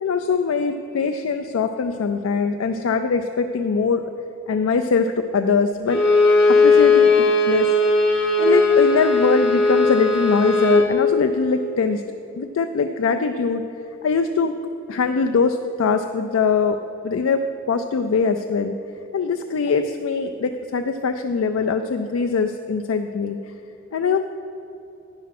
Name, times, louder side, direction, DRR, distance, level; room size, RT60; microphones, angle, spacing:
voice 1, 0.0-4.0 4.5-6.0 6.5-7.7 8.4-12.0 12.3-13.6 14.0-14.6 14.9-16.8 17.0-18.7 19.1-23.4 23.9-24.2, left 5 dB, 75° left, 6 dB, 0.4 m, -22 dB
Bowed string instrument, 5.9-10.9, left 3 dB, 55° left, 1.5 m, -17 dB
10.0 x 5.7 x 5.9 m, 2.9 s
head